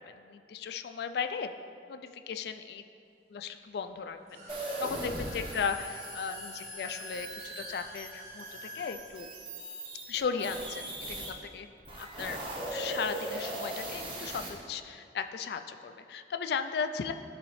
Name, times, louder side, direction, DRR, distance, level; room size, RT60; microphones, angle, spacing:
voice 1, 0.0-1.5 1.9-2.8 3.3-9.3 10.1-12.4 12.7-17.1, left 6 dB, 65° left, 8 dB, 0.3 m, -36 dB
sound 1, 4.2-8.9, equal, 45° right, 1.4 m, -48 dB
sound 2, 4.5-11.3 11.8-14.5, right 1 dB, 30° right, 1.0 m, -39 dB
11.5 x 4.0 x 3.1 m, 2.4 s
head